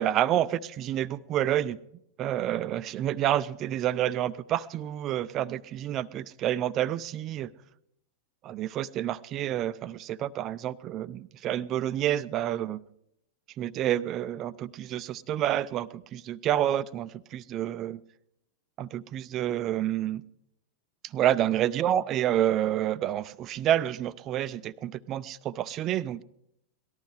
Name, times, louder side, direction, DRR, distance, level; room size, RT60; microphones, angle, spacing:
voice 1, 0.0-1.8 2.2-7.5 8.4-12.8 13.6-18.0 18.8-20.2 21.0-26.2, right 12 dB, 35° right, 17 dB, 0.5 m, -29 dB
18.5 x 12.5 x 4.8 m, 0.78 s
figure-of-eight pair, 90°, 0 cm